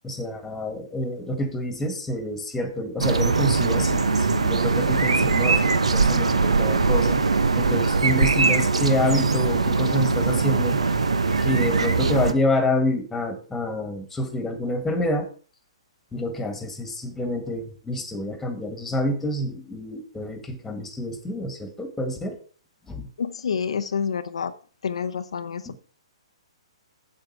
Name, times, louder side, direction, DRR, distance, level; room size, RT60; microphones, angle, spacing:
voice 1, 0.0-10.8 11.4-15.3 16.1-22.4 22.9-23.1 25.7-25.8, left 1 dB, 5° left, 6 dB, 1.8 m, -28 dB
sound 1, 3.0-12.3, right 4 dB, 80° right, 0.9 m, -21 dB
voice 2, 23.2-24.5 24.8-25.8, left 6 dB, 70° left, 9 dB, 0.7 m, -28 dB
8.2 x 8.0 x 4.7 m, 0.40 s
hypercardioid pair, 130°, 3 cm